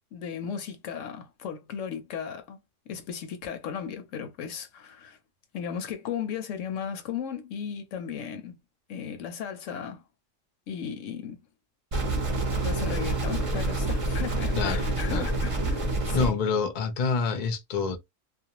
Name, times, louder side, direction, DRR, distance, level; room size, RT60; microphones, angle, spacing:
voice 1, 0.1-2.6 2.9-5.2 5.5-8.5 8.9-10.0 10.7-11.4 12.6-16.4, left 7 dB, 75° left, 0.9 m, -36 dB
sound 1, 11.9-16.3, right 2 dB, 35° right, 0.6 m, -27 dB
voice 2, 16.1-18.0, left 4 dB, 50° left, 0.6 m, -27 dB
2.5 x 2.1 x 2.8 m
omnidirectional pair, 1.3 m